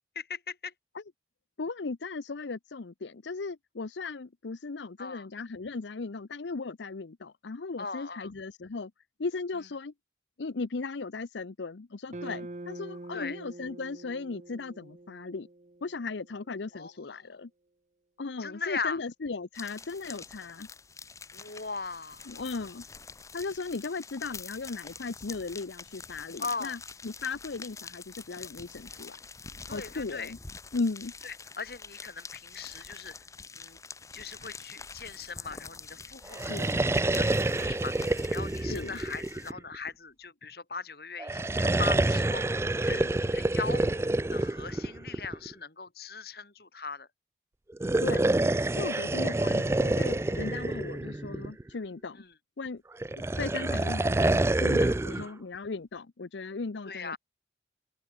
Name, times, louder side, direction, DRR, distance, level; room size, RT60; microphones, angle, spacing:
voice 1, 0.2-0.7 5.0-5.3 7.8-8.3 13.1-13.4 16.7-17.3 18.4-19.0 21.3-22.3 26.4-26.8 29.7-30.3 31.2-33.1 33.5-33.8 34.1-47.1 48.9-49.1 52.2-52.3 55.1-55.3 56.9-57.2, left 4 dB, 55° left, 2.2 m, -39 dB
voice 2, 1.6-8.9 9.2-9.9 10.4-15.5 15.8-17.5 18.2-20.7 22.3-22.8 23.3-29.2 29.7-30.4 30.7-31.1 36.5-36.8 38.7-39.0 42.9-43.1 48.0-48.3 48.7-52.2 52.6-52.8 53.4-54.3 54.5-57.2, left 4 dB, 75° left, 0.7 m, -37 dB
sound 1, 12.1-16.4, right 2 dB, 40° right, 0.8 m, -45 dB
sound 2, 19.5-39.5, left 5 dB, 15° left, 0.9 m, -46 dB
sound 3, 36.3-39.9 41.2-45.5 47.7-51.7 53.0-55.3, right 2 dB, 15° right, 0.3 m, -27 dB
open air
head